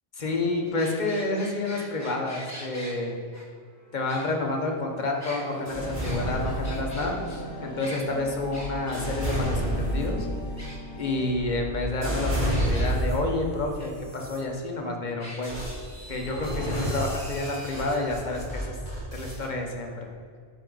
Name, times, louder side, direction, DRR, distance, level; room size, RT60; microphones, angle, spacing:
voice 1, 0.2-3.2 3.9-10.3 11.0-15.6 16.1-18.8 19.1-20.1, left 2 dB, 45° left, 1 dB, 1.1 m, -29 dB
sound 1, 0.7-3.0 3.3-3.4 4.1-4.7 5.1-7.1 7.8-8.0 8.5-9.4 9.7-9.8 10.1-10.2 10.6-11.2 12.5-12.9 13.8-13.9 14.2-14.3 15.2-15.4, equal, 15° left, 1.3 m, -42 dB
sound 2, 5.3-12.2, left 1 dB, 70° left, 1.4 m, -39 dB
sound 3, 5.7-7.2 7.9-13.4 14.0-14.4 15.4-19.4, equal, 45° right, 2.3 m, -30 dB
9.3 x 5.1 x 4.0 m, 2.1 s
omnidirectional pair, 1.1 m